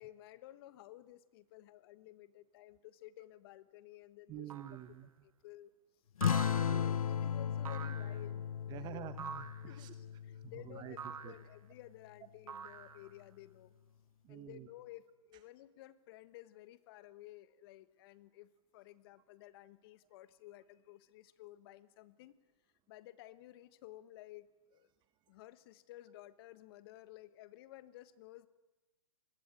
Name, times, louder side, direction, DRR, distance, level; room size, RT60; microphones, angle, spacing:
voice 1, 0.0-4.5 5.2-5.7 6.4-9.1 9.7-13.7 14.3-22.4 22.9-24.9 25.3-28.5, left 15 dB, 45° left, 15 dB, 1.4 m, -54 dB
voice 2, 4.3-5.1 6.7-6.8 8.7-9.9 10.4-11.0 11.2-11.3 14.2-14.7, right 12 dB, 25° right, 11 dB, 1.1 m, -48 dB
sound 1, 4.5-4.9 6.2-7.0 7.7-8.2 9.2-9.7 11.0-11.5 12.5-13.2, right 7 dB, 80° right, 2.0 m, -46 dB
sound 2, 6.2-11.2, left 8 dB, 85° left, 0.8 m, -36 dB
25.5 x 20.5 x 9.1 m, 1.1 s
hypercardioid pair, 140°, 18 cm